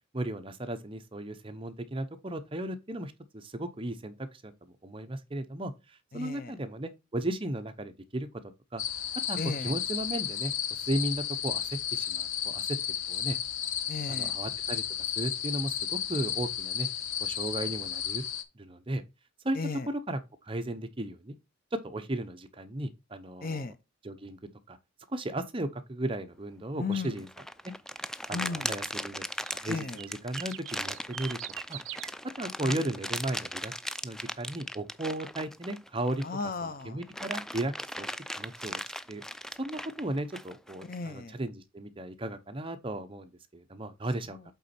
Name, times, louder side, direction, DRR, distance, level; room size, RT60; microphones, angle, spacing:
voice 1, 0.1-8.3 8.7-9.4 9.6-12.8 13.1-13.4 14.1-14.8 15.2-16.9 17.2-18.2 18.5-19.0 19.4-19.6 20.1-21.4 21.7-23.7 24.0-24.4 24.7-24.8 25.1-27.3 28.3-31.4 31.7-32.1 32.4-33.7 34.0-36.2 36.8-38.1 38.4-38.8 39.1-39.2 39.6-44.5, right 1 dB, 25° right, 0.8 m, -35 dB
voice 2, 6.1-6.5 9.4-9.7 13.9-14.4 19.5-19.9 23.4-23.8 26.8-27.2 28.3-28.7 29.7-30.0 32.6-32.8 36.2-37.0 40.8-41.4 44.3-44.5, left 4 dB, 45° left, 0.8 m, -35 dB
sound 1, 8.8-18.4, left 9 dB, 85° left, 1.0 m, -33 dB
sound 2, 26.9-27.1 29.4-32.1, right 14 dB, 75° right, 0.5 m, -43 dB
sound 3, 27.2-36.4 36.8-41.0, equal, 5° left, 0.3 m, -38 dB
8.3 x 4.0 x 4.3 m
head